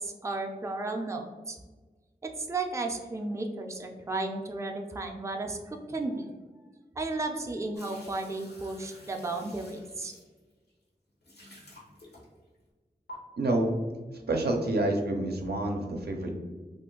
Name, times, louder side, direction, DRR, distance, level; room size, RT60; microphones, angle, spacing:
voice 1, 0.0-1.6 2.2-6.3 7.0-10.1, right 2 dB, 15° right, 3 dB, 0.4 m, -34 dB
sound 1, 7.8-10.7 11.2-12.6 13.1-13.2, equal, 80° left, 0.9 m, -50 dB
voice 2, 13.4-13.7 14.1-16.4, right 2 dB, 75° right, 2 dB, 0.5 m, -28 dB
2.5 x 2.2 x 3.7 m, 1.3 s
wide cardioid pair, 45°, 17 cm